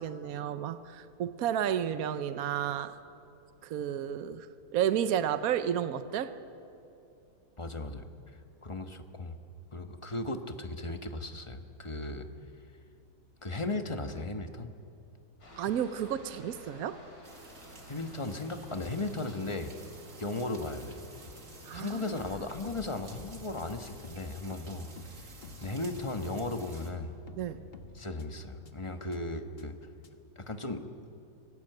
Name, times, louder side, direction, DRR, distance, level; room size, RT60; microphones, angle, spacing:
voice 1, 0.0-3.0 3.6-6.3 15.6-17.0 21.7-22.0 27.4-27.6, right 9 dB, 65° right, 11 dB, 1.2 m, -32 dB
voice 2, 7.6-8.1 8.6-9.3 9.7-12.3 13.4-14.7 17.9-19.7 20.2-21.0 21.7-25.3 25.6-27.1 27.9-29.8 30.4-30.8, left 2 dB, 20° left, 6 dB, 1.1 m, -36 dB
Aircraft, 15.4-22.2, left 1 dB, 60° left, 4.7 m, -54 dB
sound 1, 17.2-26.9, right 3 dB, 50° right, 2.4 m, -52 dB
sound 2, 21.3-21.4 21.7-21.8 22.2-28.2 28.7-28.8 29.1-29.2 29.6-29.7 30.0-30.1, left 3 dB, 35° left, 1.4 m, -49 dB
25.5 x 18.0 x 7.9 m, 2.7 s
omnidirectional pair, 1.8 m